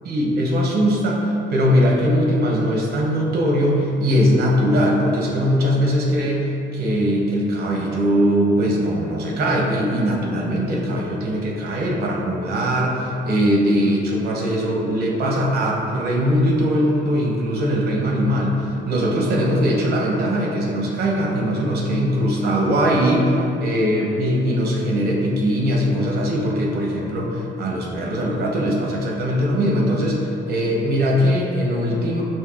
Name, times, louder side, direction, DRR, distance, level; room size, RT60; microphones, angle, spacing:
voice 1, 0.1-32.2, equal, 55° right, -2 dB, 0.6 m, -20 dB
5.2 x 2.6 x 2.4 m, 2.8 s
cardioid pair, 160°, 19 cm